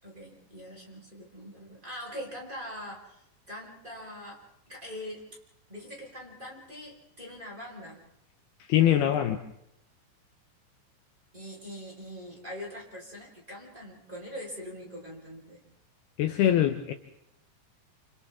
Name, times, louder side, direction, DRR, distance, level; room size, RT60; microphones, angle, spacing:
voice 1, 0.0-5.4 5.7-8.0 8.8-9.3 11.3-15.6, equal, 10° right, -4 dB, 4.8 m, -43 dB
voice 2, 8.7-9.4 16.2-16.9, left 11 dB, 75° left, 6 dB, 2.6 m, -23 dB
28.5 x 28.5 x 3.7 m, 0.79 s
omnidirectional pair, 5.1 m